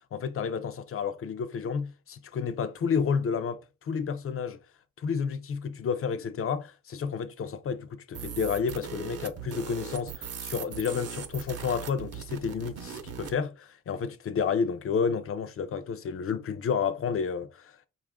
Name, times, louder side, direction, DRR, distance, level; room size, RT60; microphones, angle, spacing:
voice 1, 0.1-4.6 5.0-17.9, left 6 dB, 45° left, 0.5 m, -31 dB
sound 1, 8.1-13.4, right 8 dB, 45° right, 0.6 m, -39 dB
5.0 x 2.5 x 3.5 m
wide cardioid pair, 165°, 33 cm